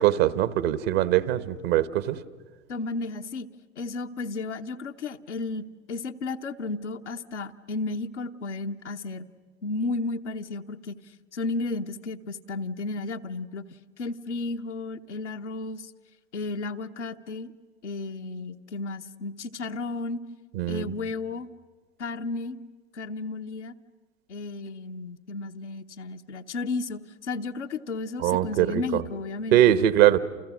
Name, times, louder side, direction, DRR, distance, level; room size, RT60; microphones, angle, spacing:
voice 1, 0.0-2.2 20.6-20.9 28.2-28.8 29.5-30.2, right 12 dB, 60° right, 15 dB, 1.2 m, -21 dB
voice 2, 2.7-3.5 3.8-9.2 9.6-10.9 11.3-13.6 14.0-15.9 16.3-17.5 17.8-20.2 20.7-21.5 22.0-22.6 22.9-23.7 24.3-29.8, left 3 dB, 85° left, 6 dB, 1.0 m, -33 dB
29.5 x 28.5 x 6.3 m, 1.5 s
hypercardioid pair, 85°, 34 cm